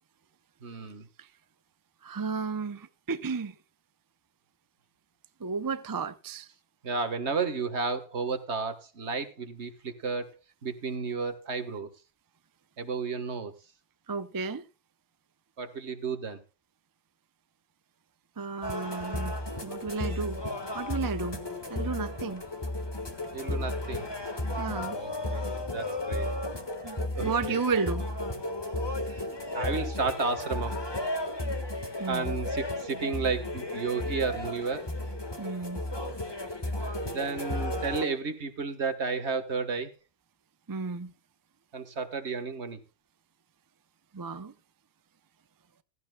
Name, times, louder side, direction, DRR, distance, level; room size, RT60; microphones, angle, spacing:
voice 1, 0.6-1.1 6.8-10.3 10.6-11.9 12.8-13.5 15.6-16.4 23.3-24.1 25.0-26.3 27.1-27.6 29.1-29.3 29.5-30.8 32.1-34.9 37.0-39.9 41.7-42.8, right 4 dB, 65° right, 1.7 m, -32 dB
voice 2, 2.0-3.6 5.4-6.5 14.1-14.6 18.4-19.4 19.6-20.4 20.7-21.4 21.7-22.4 24.6-25.0 26.8-28.1 32.0-32.3 35.4-35.8 40.7-41.1 44.1-44.5, right 5 dB, 25° right, 0.5 m, -33 dB
sound 1, 18.6-38.1, left 1 dB, 20° left, 1.6 m, -34 dB
16.0 x 14.5 x 2.3 m
omnidirectional pair, 1.2 m